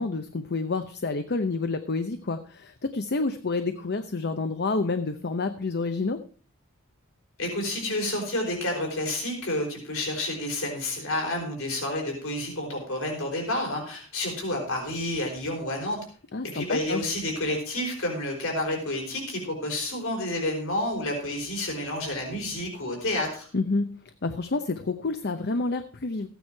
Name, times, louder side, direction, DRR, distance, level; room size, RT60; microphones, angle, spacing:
voice 1, 0.0-6.2 16.3-17.0 23.5-23.9 24.2-26.3, left 3 dB, 50° left, 9 dB, 0.8 m, -29 dB
voice 2, 7.4-16.0 16.4-23.5, left 1 dB, 70° left, 1 dB, 4.6 m, -30 dB
15.0 x 9.3 x 4.6 m, 0.42 s
head